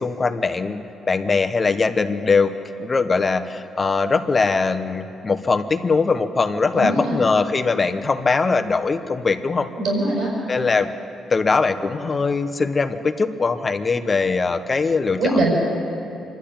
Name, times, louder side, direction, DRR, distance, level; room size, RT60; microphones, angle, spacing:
voice 1, 0.0-2.5 2.8-9.7 10.5-10.9 11.3-15.5, left 4 dB, 30° left, 7 dB, 1.1 m, -21 dB
voice 2, 6.7-7.2 9.8-10.3 15.2-15.5, right 2 dB, 65° right, -2 dB, 6.3 m, -21 dB
25.5 x 12.0 x 8.8 m, 2.8 s
cardioid pair, 90°, 0 cm